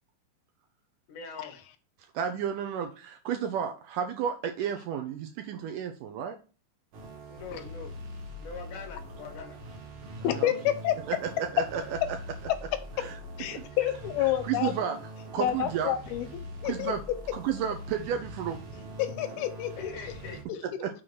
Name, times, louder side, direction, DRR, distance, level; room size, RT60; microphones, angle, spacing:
voice 1, 1.1-1.6 7.3-8.0 8.4-9.6 19.8-20.7, left 5 dB, 60° left, 3 dB, 2.7 m, -43 dB
voice 2, 2.2-6.4 10.3-10.4 11.1-11.8 12.1-12.2 13.0-13.1 13.5-13.6 14.4-15.0 15.3-15.9 16.6-17.0 17.3-18.6 20.8-20.9, right 8 dB, 75° right, 5 dB, 2.0 m, -32 dB
sound 1, 6.9-20.4, equal, 55° right, 2.5 m, -43 dB
voice 3, 10.2-11.0 12.5-12.8 13.4-14.7 15.4-16.3 16.6-16.9 19.0-19.9 20.3-20.4, left 12 dB, 90° left, 10 dB, 2.8 m, -29 dB
6.5 x 4.0 x 5.9 m, 0.35 s
omnidirectional pair, 4.3 m